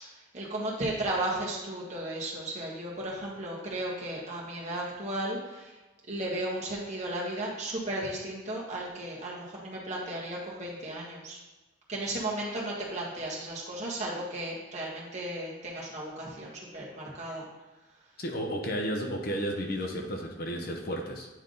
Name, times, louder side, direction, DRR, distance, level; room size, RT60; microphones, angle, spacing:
voice 1, 0.0-5.8 6.1-11.4 11.9-17.5, right 1 dB, 40° right, -4 dB, 1.6 m, -35 dB
voice 2, 18.2-21.3, equal, 50° left, 2 dB, 0.8 m, -32 dB
9.1 x 3.5 x 3.9 m, 1.1 s
head